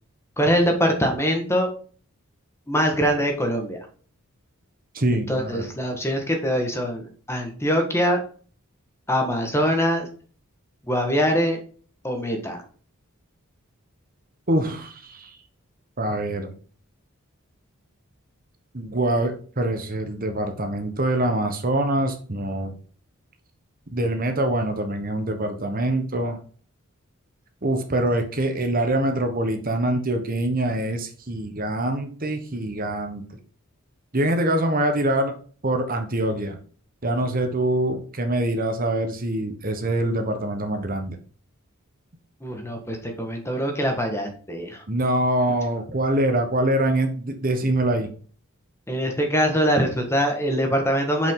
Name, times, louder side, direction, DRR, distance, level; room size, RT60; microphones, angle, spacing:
voice 1, 0.4-1.7 2.7-3.8 5.3-8.2 9.1-10.1 10.9-11.6 12.0-12.6 42.4-44.8 48.9-51.3, equal, 10° left, 3 dB, 1.7 m, -23 dB
voice 2, 4.9-5.7 14.5-15.3 16.0-16.5 18.7-22.7 23.9-26.4 27.6-33.4 34.1-35.3 35.6-36.6 37.0-41.2 44.9-48.1, right 1 dB, 40° right, 5 dB, 1.3 m, -24 dB
8.0 x 5.7 x 3.9 m, 0.42 s
head